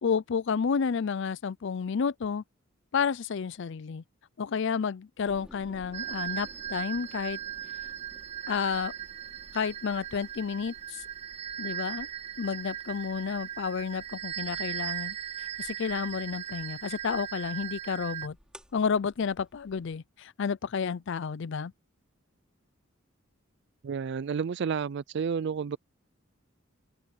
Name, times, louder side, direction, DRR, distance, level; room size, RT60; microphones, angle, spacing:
voice 1, 0.0-2.4 2.9-4.0 4.4-7.4 8.5-8.9 9.5-11.0 11.6-12.1 12.4-18.4 18.7-21.7, left 6 dB, 60° left, 0.4 m, -31 dB
sound 1, 5.3-20.0, equal, 5° right, 4.1 m, -57 dB
sound 2, 5.9-18.3, right 11 dB, 30° right, 1.6 m, -38 dB
voice 2, 23.8-25.8, right 6 dB, 55° right, 0.4 m, -31 dB
open air
head